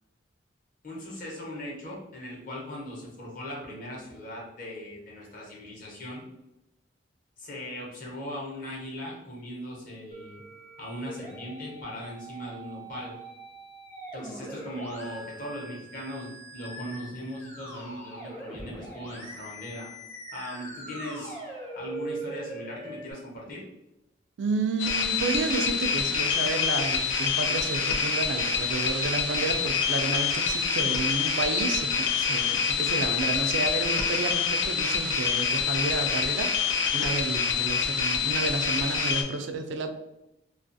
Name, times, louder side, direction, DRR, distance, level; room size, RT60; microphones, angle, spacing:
voice 1, 0.8-6.2 7.4-10.4 10.8-13.2 14.1-19.9 20.3-21.4 21.8-23.6, equal, 45° left, -3 dB, 0.8 m, -39 dB
Musical instrument, 10.1-23.1, right 1 dB, 15° left, 0.5 m, -42 dB
voice 2, 24.4-39.9, right 3 dB, 75° right, 6 dB, 0.3 m, -31 dB
sound 1, 24.8-39.2, left 6 dB, 85° left, 0.4 m, -26 dB
2.4 x 2.3 x 2.5 m, 0.91 s
head